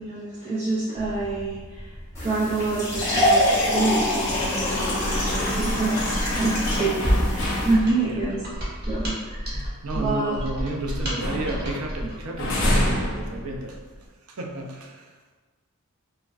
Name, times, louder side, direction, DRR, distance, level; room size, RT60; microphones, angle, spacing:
voice 1, 0.0-1.9 2.2-8.4 8.9-9.6 10.0-10.4, right 3 dB, 30° right, -9 dB, 0.5 m, -27 dB
sound 1, 1.0-8.3 8.7-8.8 9.2-10.7 11.0-14.0, left 1 dB, 60° left, 0.7 m, -30 dB
sound 2, 2.1-7.7, left 1 dB, 15° left, 1.1 m, -25 dB
Mechanisms, 5.1-12.2, equal, 50° right, 1.0 m, -32 dB
voice 2, 9.5-15.1, right 2 dB, 80° right, 1 dB, 0.5 m, -33 dB
4.6 x 2.1 x 2.4 m, 1.3 s
head